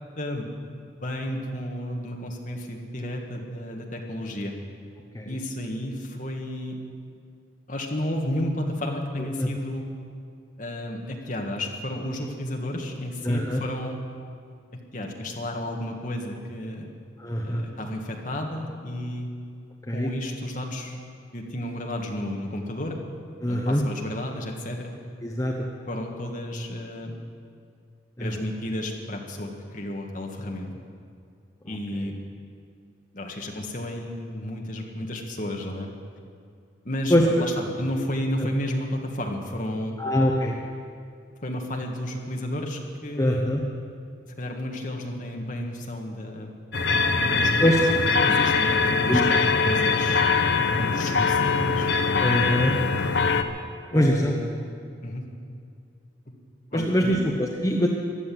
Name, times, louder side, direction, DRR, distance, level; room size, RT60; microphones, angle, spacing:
voice 1, 0.2-0.5 1.0-4.5 5.2-6.8 7.7-9.8 10.6-14.0 14.9-16.9 17.4-19.3 19.9-20.9 21.3-23.0 23.5-24.9 25.9-27.1 28.2-30.7 31.7-32.1 33.1-35.9 36.8-40.0 41.4-43.4 44.3-46.5 47.2-47.7 48.1-51.9 53.9-54.5 55.0-55.2 56.7-57.2, left 1 dB, 40° left, 1 dB, 1.7 m, -32 dB
voice 2, 13.2-13.6 17.2-17.6 19.9-20.1 23.4-23.8 25.2-25.5 28.2-28.3 31.7-31.8 37.1-37.2 40.0-40.5 43.2-43.6 47.6-47.8 49.1-49.3 52.2-52.7 53.9-54.3 56.7-57.9, equal, 15° left, -1 dB, 0.9 m, -23 dB
sound 1, 46.7-53.4, left 4 dB, 60° left, 0.8 m, -22 dB
15.5 x 11.5 x 7.6 m, 2.3 s
head